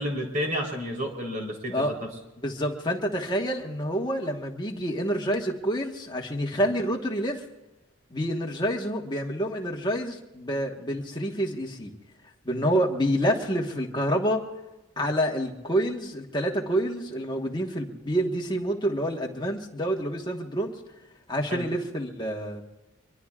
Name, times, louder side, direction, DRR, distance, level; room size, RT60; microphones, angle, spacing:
voice 1, 0.0-1.9 21.5-21.7, equal, 35° right, 0 dB, 3.8 m, -30 dB
voice 2, 2.4-7.4 8.1-11.9 12.4-14.4 15.0-20.7 21.3-22.6, equal, 20° left, 0 dB, 1.4 m, -28 dB
25.0 x 23.0 x 2.5 m, 1.0 s
head